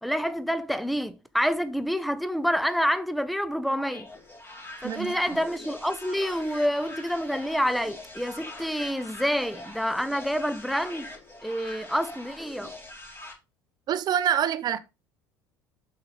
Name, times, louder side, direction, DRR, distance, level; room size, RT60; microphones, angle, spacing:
voice 1, 0.0-4.1 4.8-11.1 11.4-12.7, equal, ahead, 0.7 m, -28 dB
sound 1, 3.8-13.3, left 2 dB, 20° left, 2.8 m, -43 dB
voice 2, 4.8-5.2 13.9-14.8, right 10 dB, 35° right, 0.7 m, -26 dB
7.0 x 5.0 x 4.0 m
figure-of-eight pair, 65°, 11 cm